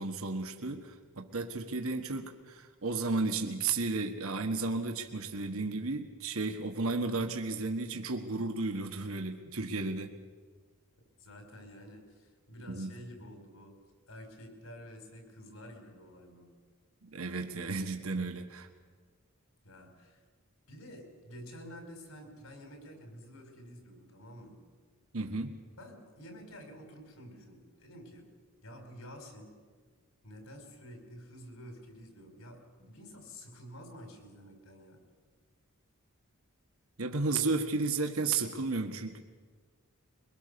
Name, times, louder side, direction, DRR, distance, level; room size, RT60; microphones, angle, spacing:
voice 1, 0.0-10.1 12.7-12.9 17.0-18.7 25.1-25.6 37.0-39.2, right 3 dB, 75° right, 5 dB, 1.5 m, -33 dB
voice 2, 11.2-13.7 14.1-16.6 19.6-20.2 20.7-24.6 25.8-28.3 28.6-29.6 30.2-35.0, equal, 75° left, 4 dB, 5.0 m, -50 dB
23.0 x 22.0 x 6.9 m, 1.5 s
head